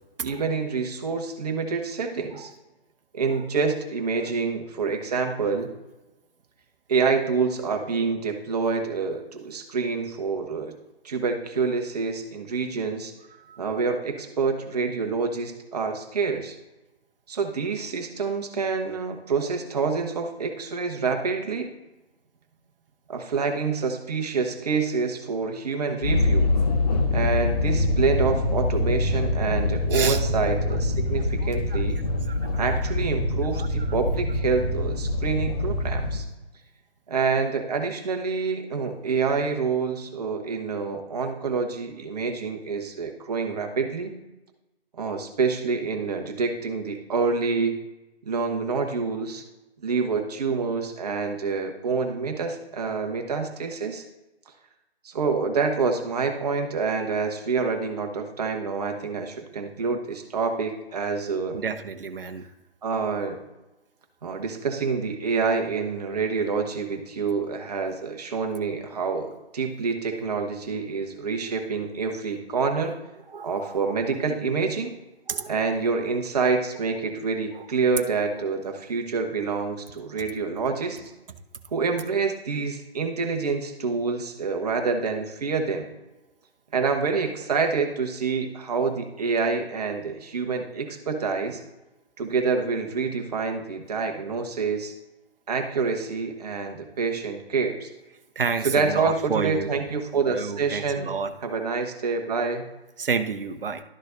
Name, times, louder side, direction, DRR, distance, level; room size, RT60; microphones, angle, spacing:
voice 1, 0.2-2.5 3.1-5.7 6.9-10.7 11.0-13.1 13.6-16.6 17.3-21.7 23.1-26.5 27.1-32.0 32.6-36.3 37.1-44.1 45.0-47.8 48.2-49.4 49.8-54.0 55.0-61.6 62.8-63.4 64.2-73.0 73.4-74.9 75.5-81.0 81.7-85.9 86.7-91.6 92.2-95.0 95.5-97.9 98.6-101.1 101.4-102.7, right 4 dB, 40° right, 4 dB, 1.1 m, -27 dB
sound 1, 26.0-36.2, left 2 dB, 40° left, 1.2 m, -24 dB
voice 2, 29.9-30.2 31.7-31.8 32.3-32.4 32.7-32.8 33.5-33.9 61.5-62.5 73.3-73.8 75.3-75.5 77.5-77.6 98.4-99.7 100.3-101.3 103.0-103.8, right 5 dB, 60° right, 9 dB, 0.8 m, -30 dB
12.0 x 6.3 x 2.6 m, 1.0 s
figure-of-eight pair, 145°, 32 cm